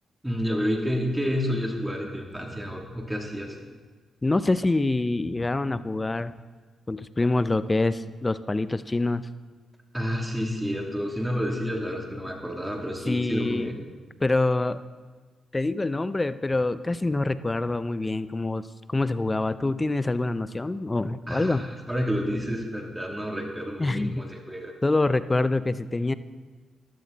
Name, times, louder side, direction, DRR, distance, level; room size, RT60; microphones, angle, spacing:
voice 1, 0.2-3.6 9.9-13.8 21.3-24.7, equal, 10° right, 1 dB, 2.9 m, -29 dB
voice 2, 4.2-6.3 6.9-9.3 13.1-13.8 14.2-14.8 15.5-21.7 23.8-24.3 24.8-26.1, left 2 dB, 25° left, 14 dB, 0.7 m, -25 dB
15.5 x 12.0 x 4.1 m, 1.4 s
supercardioid pair, 55°, 0 cm